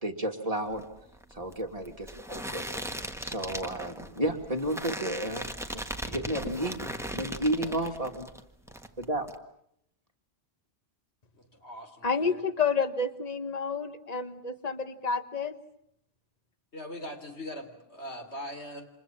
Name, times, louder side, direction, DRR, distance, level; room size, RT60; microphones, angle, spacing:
voice 1, 0.0-0.8 1.3-2.7 3.2-5.5 5.7-8.3 9.0-9.3, right 1 dB, 35° right, 3 dB, 2.6 m, -32 dB
sound 1, 0.7-8.4 8.7-9.3, right 1 dB, 5° right, 1.5 m, -38 dB
voice 2, 11.3-12.4 16.7-18.9, left 1 dB, 80° left, 5 dB, 4.1 m, -41 dB
voice 3, 12.0-15.5, left 5 dB, 35° left, 9 dB, 1.5 m, -29 dB
29.0 x 26.5 x 7.4 m, 0.73 s
omnidirectional pair, 1.1 m